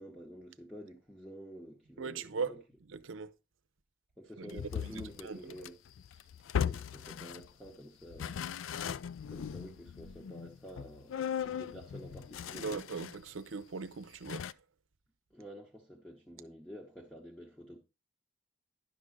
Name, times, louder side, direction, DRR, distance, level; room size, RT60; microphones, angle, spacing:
voice 1, 0.0-2.6 4.2-5.8 6.6-8.9 9.3-12.7 15.3-17.8, equal, 5° left, 1.0 m, -49 dB
voice 2, 2.0-2.6 2.9-3.3 4.4-5.7 12.5-14.6, right 5 dB, 90° right, 0.7 m, -40 dB
sound 1, 4.5-7.7 8.1-13.3 13.6-13.7 14.3-14.5, left 8 dB, 85° left, 0.4 m, -38 dB
10.5 x 3.6 x 6.4 m
head